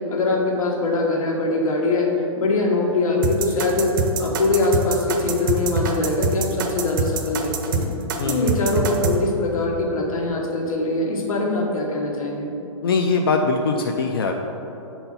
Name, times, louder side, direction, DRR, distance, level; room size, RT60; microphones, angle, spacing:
voice 1, 0.1-2.1 2.4-3.9 4.2-7.9 8.2-12.5, left 2 dB, 85° left, 0 dB, 1.5 m, -22 dB
sound 1, 3.2-9.2, right 4 dB, 35° right, 0.6 m, -24 dB
voice 2, 12.8-14.4, left 4 dB, 45° left, 3 dB, 0.4 m, -21 dB
6.7 x 4.4 x 5.4 m, 3.0 s
hypercardioid pair, 170°, 18 cm